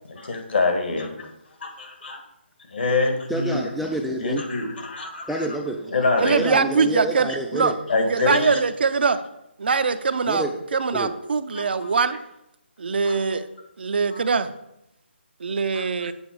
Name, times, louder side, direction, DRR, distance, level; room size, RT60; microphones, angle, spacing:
voice 1, 0.1-1.3 1.6-2.2 2.7-3.6 4.2-5.5 5.9-6.5 7.9-8.6 11.5-11.9 13.0-13.5 14.1-14.2 15.7-15.8, left 3 dB, 60° left, 3 dB, 1.9 m, -25 dB
voice 2, 3.3-4.4 5.3-5.9 6.3-7.7 10.3-10.5 10.9-11.1, right 1 dB, ahead, 1 dB, 0.3 m, -27 dB
voice 3, 6.2-7.7 8.1-9.2 9.6-10.4 10.7-12.2 12.8-13.5 13.8-14.5 15.4-16.1, right 5 dB, 55° right, 11 dB, 0.5 m, -22 dB
8.0 x 5.1 x 4.6 m, 0.85 s
figure-of-eight pair, 150°, 6 cm